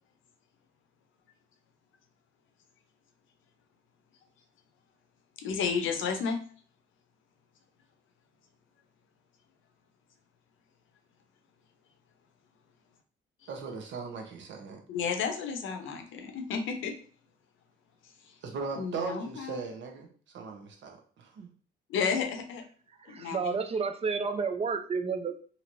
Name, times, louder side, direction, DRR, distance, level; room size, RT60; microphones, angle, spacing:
voice 1, 5.4-6.4 14.9-16.9 18.8-19.6 21.9-22.6 23.1-23.6, left 6 dB, 80° left, 5 dB, 0.6 m, -32 dB
voice 2, 13.5-14.8 18.4-21.5, right 4 dB, 70° right, 2 dB, 0.9 m, -38 dB
voice 3, 23.0-25.4, right 5 dB, 30° right, 7 dB, 0.5 m, -31 dB
3.0 x 2.9 x 2.6 m, 0.43 s
cardioid pair, 90°, 20 cm